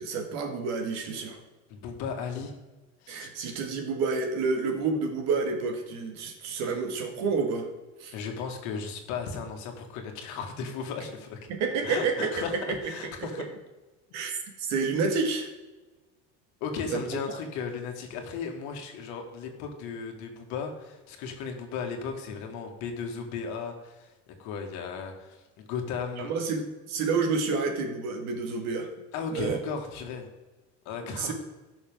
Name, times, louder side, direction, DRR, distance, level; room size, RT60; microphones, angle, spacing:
voice 1, 0.0-1.4 3.1-7.7 8.0-8.1 11.5-13.5 14.1-15.5 16.9-17.2 26.2-28.9 29.3-29.6 31.1-31.3, right 4 dB, 50° right, 4 dB, 1.9 m, -29 dB
voice 2, 1.7-2.5 3.0-3.3 8.1-11.5 11.8-13.5 16.6-24.1 24.4-26.3 29.1-30.3 30.9-31.3, left 5 dB, 55° left, 3 dB, 2.0 m, -35 dB
16.5 x 6.4 x 3.7 m, 1.2 s
cardioid pair, 175°, 34 cm